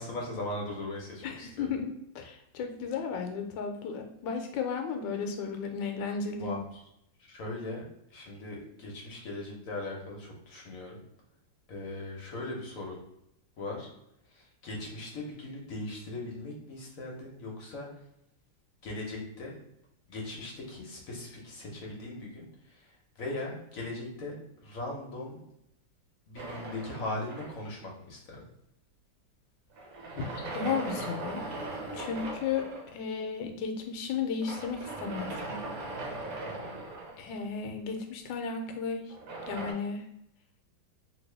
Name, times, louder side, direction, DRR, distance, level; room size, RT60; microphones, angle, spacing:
voice 1, 0.0-1.7 6.4-6.8 7.3-7.8 8.1-11.0 11.7-13.0 13.6-13.9 14.3-17.9 18.8-19.5 20.1-25.4 26.3-28.4 36.4-36.8, left 2 dB, 55° left, -1 dB, 1.1 m, -39 dB
voice 2, 1.2-6.6 30.2-30.3 30.5-31.5 31.9-35.6 37.2-39.1 39.5-40.1, left 5 dB, 80° left, 5 dB, 1.3 m, -34 dB
sound 1, 26.4-27.9 29.8-32.9 34.4-37.6 39.1-39.7, right 2 dB, 60° right, 1.1 m, -39 dB
2.9 x 2.8 x 3.2 m, 0.81 s
omnidirectional pair, 2.0 m